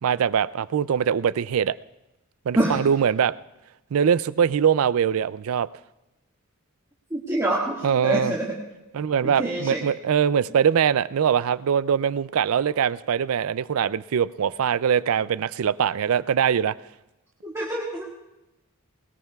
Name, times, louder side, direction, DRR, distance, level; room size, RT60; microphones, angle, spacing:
voice 1, 0.0-1.8 2.5-3.3 3.9-5.7 7.8-8.3 8.9-16.7, right 8 dB, 70° right, 0.4 m, -22 dB
voice 2, 7.1-8.5 9.2-9.8 17.4-18.2, right 1 dB, 15° right, 1.7 m, -26 dB
20.0 x 19.5 x 2.3 m
head